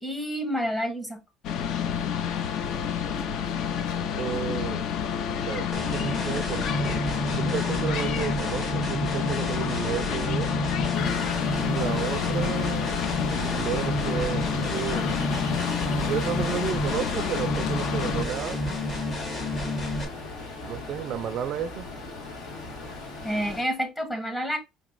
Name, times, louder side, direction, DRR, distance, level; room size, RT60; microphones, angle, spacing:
voice 1, 0.0-1.2 23.2-24.6, equal, 15° left, 0.9 m, -29 dB
delaware approachingshore, 1.4-18.2, left 8 dB, 55° left, 0.5 m, -29 dB
voice 2, 4.2-4.8 5.5-7.0 7.3-10.5 11.5-13.0 13.3-15.1 16.0-18.6 20.6-21.9, right 9 dB, 50° right, 0.3 m, -32 dB
sound 1, 5.7-20.0, left 1 dB, 40° left, 1.4 m, -30 dB
Ocean, 10.9-23.6, left 3 dB, 80° left, 1.6 m, -38 dB
5.3 x 2.9 x 2.4 m
cardioid pair, 160°, 0 cm